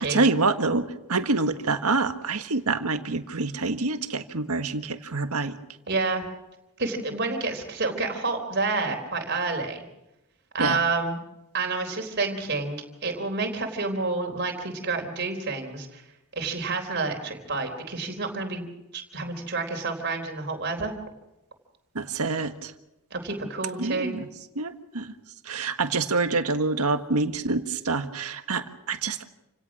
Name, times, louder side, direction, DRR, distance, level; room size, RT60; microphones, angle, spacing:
voice 1, 0.0-5.6 10.6-10.8 21.9-22.7 23.8-24.3 24.5-25.1 25.4-29.2, right 3 dB, 85° right, 8 dB, 1.6 m, -26 dB
voice 2, 5.9-6.2 6.8-9.8 10.5-11.2 11.5-16.0 16.4-18.6 18.9-20.9 23.1-24.1, right 3 dB, 50° right, 4 dB, 3.8 m, -29 dB
28.5 x 17.5 x 6.2 m, 0.92 s
head